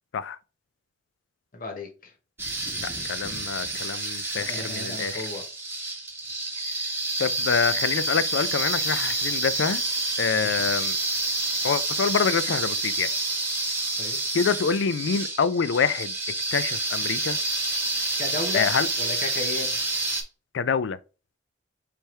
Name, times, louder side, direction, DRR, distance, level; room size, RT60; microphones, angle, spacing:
voice 1, 1.5-2.1 4.4-5.4 10.3-10.7 14.0-14.2 18.2-18.7 19.0-19.8, left 3 dB, 45° left, 1.0 m, -34 dB
sound 1, 2.4-20.2, right 2 dB, 10° right, 1.2 m, -28 dB
voice 2, 2.8-5.2 7.2-9.8 10.2-11.0 11.6-13.1 14.3-16.1 16.5-17.4 18.5-18.9 20.5-21.0, left 6 dB, 65° left, 0.4 m, -26 dB
4.5 x 3.4 x 3.2 m
head